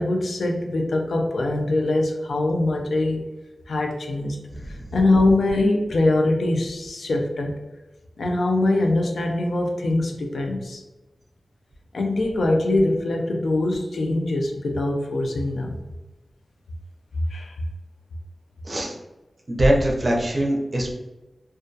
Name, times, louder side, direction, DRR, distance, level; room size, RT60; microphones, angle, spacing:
voice 1, 0.0-3.3 3.7-4.4 4.7-7.6 8.2-10.8 11.9-15.8 17.3-17.5, left 2 dB, 85° left, 2 dB, 0.4 m, -23 dB
voice 2, 19.5-20.9, right 1 dB, 40° right, -1 dB, 0.6 m, -21 dB
2.2 x 2.2 x 2.6 m, 1.1 s
wide cardioid pair, 80°, 0 cm